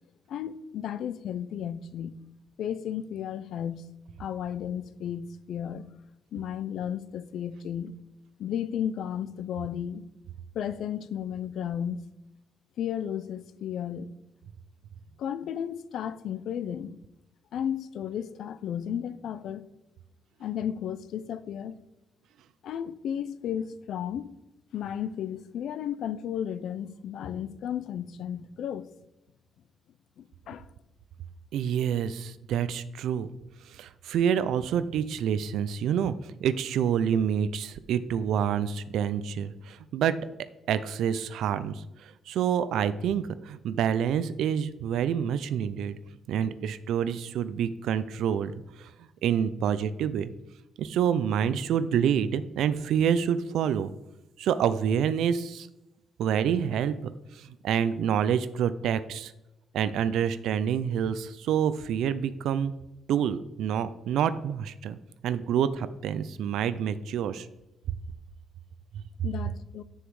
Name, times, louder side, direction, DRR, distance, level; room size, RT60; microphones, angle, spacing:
voice 1, 0.3-2.2 2.6-3.8 4.2-5.9 6.3-7.9 8.4-10.0 10.5-12.0 12.8-14.1 15.2-16.9 17.5-19.7 20.4-21.8 22.6-24.3 24.7-28.9 30.2-30.7 69.2-69.8, left 9 dB, 70° left, 0.4 m, -33 dB
voice 2, 31.5-33.3 33.7-36.1 36.4-40.2 40.7-46.0 46.3-48.5 48.8-48.9 49.2-50.3 50.8-53.9 54.4-55.7 56.2-59.3 59.7-62.7 63.1-65.0 65.2-67.5, right 8 dB, 85° right, 0.4 m, -27 dB
7.2 x 6.7 x 4.7 m
cardioid pair, 155°, 0 cm